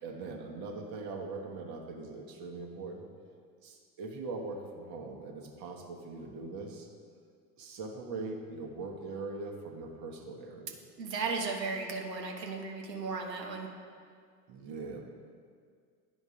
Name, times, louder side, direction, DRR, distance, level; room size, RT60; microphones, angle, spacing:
voice 1, 0.0-3.1 3.6-6.9 7.6-10.8 14.5-15.0, right 3 dB, 45° right, 1 dB, 1.4 m, -41 dB
voice 2, 11.0-13.7, right 4 dB, 75° right, 2 dB, 1.1 m, -35 dB
9.5 x 5.1 x 5.0 m, 2.1 s
figure-of-eight pair, 75°, 50 cm